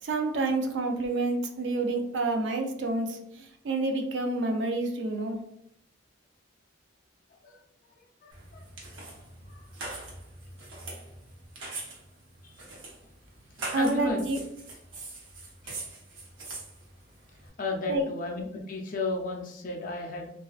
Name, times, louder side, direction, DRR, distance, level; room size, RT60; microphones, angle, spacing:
voice 1, 0.0-5.4 13.7-14.4 17.9-18.1, right 2 dB, 65° right, 3 dB, 0.4 m, -28 dB
voice 2, 8.2-8.7 9.5-9.6 12.4-12.6 13.7-14.2 15.6-15.8 17.6-20.3, left 2 dB, 45° left, 1 dB, 0.4 m, -34 dB
sound 1, 8.3-17.5, right 2 dB, 85° right, 0.7 m, -42 dB
2.3 x 2.3 x 2.3 m, 0.74 s
head